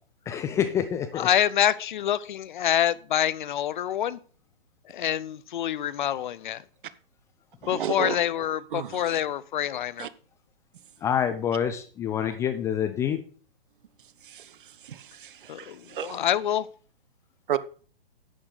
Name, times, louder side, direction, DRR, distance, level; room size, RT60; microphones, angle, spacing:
voice 1, 0.3-1.3 11.0-13.2, left 9 dB, 10° left, 0.4 m, -27 dB
voice 2, 1.2-4.2 4.9-6.6 7.7-10.1 15.5-16.7, left 11 dB, 55° left, 0.6 m, -26 dB
voice 3, 7.6-8.2 8.7-9.2 10.0-10.1 14.2-16.3 17.5-17.6, right 10 dB, 60° right, 0.9 m, -33 dB
11.0 x 8.6 x 3.9 m
figure-of-eight pair, 120°, 30 cm